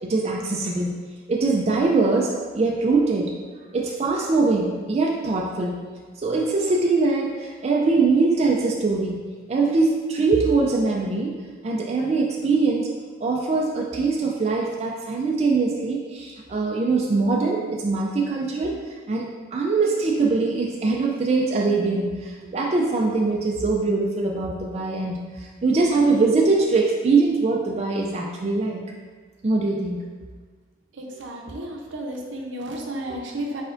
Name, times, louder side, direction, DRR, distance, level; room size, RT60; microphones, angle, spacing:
voice 1, 0.0-3.4 3.7-5.9 6.2-12.9 13.2-28.8 29.4-30.0, right 3 dB, 35° right, -1 dB, 0.3 m, -22 dB
voice 2, 31.0-33.6, right 1 dB, 75° right, 1 dB, 0.6 m, -32 dB
4.5 x 4.3 x 2.5 m, 1.5 s
head